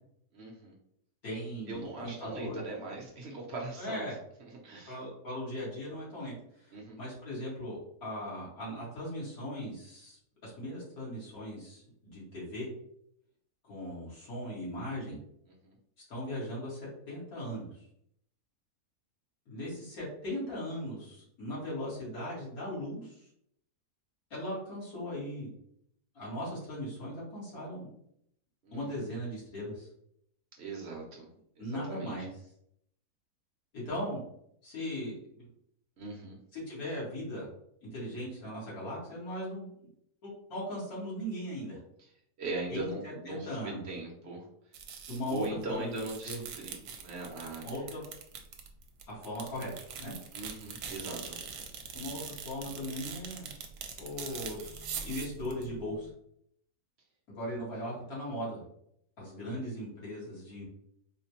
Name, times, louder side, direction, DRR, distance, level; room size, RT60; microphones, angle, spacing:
voice 1, 0.3-0.8 1.7-4.1 4.5-5.0 6.7-7.0 15.5-15.7 28.6-28.8 30.5-31.3 31.6-32.2 36.0-36.4 42.0-42.1 42.4-44.5 45.3-47.6 50.3-51.4 59.5-59.6, right 2 dB, 50° right, -1 dB, 0.9 m, -40 dB
voice 2, 1.2-2.6 3.8-4.1 4.9-12.7 13.6-15.2 16.1-17.8 19.5-23.3 24.3-25.5 26.1-27.9 28.7-29.9 31.6-32.3 33.7-34.2 34.6-35.5 36.5-37.5 37.8-39.7 40.2-41.8 42.7-43.8 45.1-46.4 47.6-48.0 49.1-49.7 50.0-50.1 51.9-53.5 54.0-56.1 57.3-58.6 59.2-60.6, equal, 70° left, -7 dB, 2.1 m, -38 dB
sound 1, 44.7-45.6 45.9-56.1, right 6 dB, 80° right, 1.1 m, -43 dB
4.2 x 2.1 x 2.9 m, 0.72 s
omnidirectional pair, 1.6 m